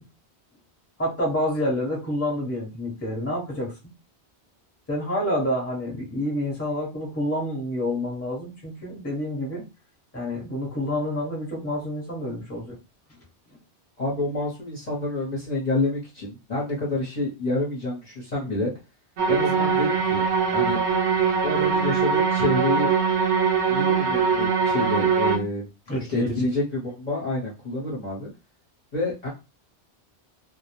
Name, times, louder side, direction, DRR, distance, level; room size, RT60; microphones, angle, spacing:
voice 1, 1.0-3.7 4.9-9.6 10.1-12.8 25.9-26.4, left 1 dB, 15° left, -2 dB, 0.8 m, -28 dB
voice 2, 14.0-18.7 19.3-20.3 20.5-20.8 21.4-22.9 23.7-28.3 28.9-29.3, left 2 dB, 40° left, -6 dB, 0.8 m, -28 dB
sound 1, 19.2-25.4, right 6 dB, 75° right, 0.9 m, -22 dB
2.1 x 2.1 x 2.9 m, 0.28 s
omnidirectional pair, 1.1 m